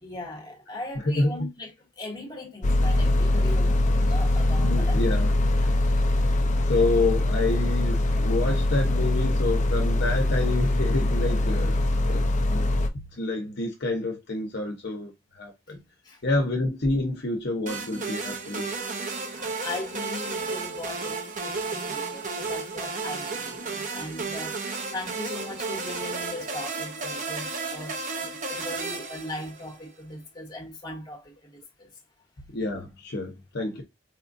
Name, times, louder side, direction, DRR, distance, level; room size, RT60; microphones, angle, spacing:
voice 1, 0.0-5.0 5.6-6.1 15.7-16.2 19.3-31.9, left 1 dB, 25° left, 1.2 m, -39 dB
voice 2, 1.0-1.5 4.6-5.3 6.7-12.7 13.2-15.1 15.4-15.8 16.2-18.7 32.5-33.8, left 2 dB, 60° left, 0.9 m, -28 dB
sound 1, 2.6-12.9, left 1 dB, 40° left, 0.5 m, -23 dB
sound 2, 17.7-29.8, right 4 dB, 45° right, 0.8 m, -33 dB
4.3 x 2.4 x 2.6 m
head